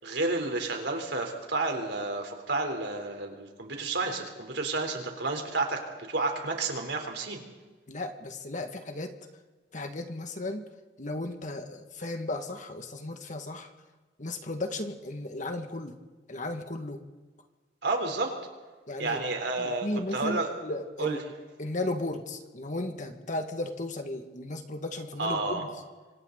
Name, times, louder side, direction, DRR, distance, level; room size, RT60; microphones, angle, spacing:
voice 1, 0.0-7.4 17.8-18.3 19.0-20.5 21.0-21.2 25.2-25.6, right 3 dB, 70° right, 3 dB, 3.9 m, -31 dB
voice 2, 7.9-9.1 9.7-10.6 11.0-13.7 14.2-16.0 16.3-17.0 18.9-19.2 19.6-21.2 21.6-25.7, left 2 dB, 45° left, 6 dB, 1.9 m, -35 dB
27.0 x 25.5 x 4.1 m, 1.3 s
head